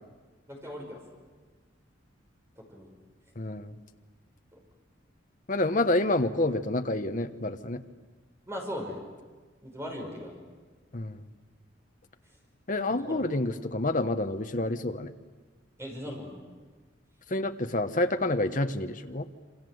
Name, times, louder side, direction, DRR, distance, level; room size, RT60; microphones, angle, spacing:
voice 1, 0.5-1.0 2.6-2.9 4.5-4.6 8.5-9.0 9.6-10.4 13.1-13.2 15.8-16.4, equal, 15° right, 0 dB, 5.9 m, -38 dB
voice 2, 3.4-3.7 5.5-7.8 10.9-11.2 12.7-15.1 17.3-19.3, left 2 dB, 40° left, 8 dB, 1.1 m, -28 dB
28.0 x 25.5 x 8.0 m, 1.4 s
head